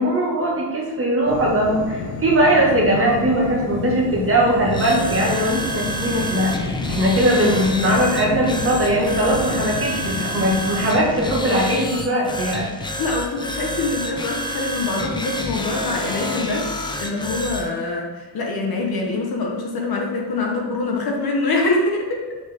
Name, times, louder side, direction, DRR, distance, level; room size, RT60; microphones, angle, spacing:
voice 1, 0.0-12.7, right 1 dB, 30° right, -3 dB, 1.7 m, -20 dB
sound 1, 1.3-11.2, left 4 dB, 80° left, 1.4 m, -30 dB
sound 2, 4.6-17.7, equal, 10° left, 0.4 m, -29 dB
voice 2, 13.0-22.4, left 3 dB, 50° left, 1 dB, 1.3 m, -24 dB
6.3 x 5.0 x 3.6 m, 1.3 s
cardioid pair, 150°, 46 cm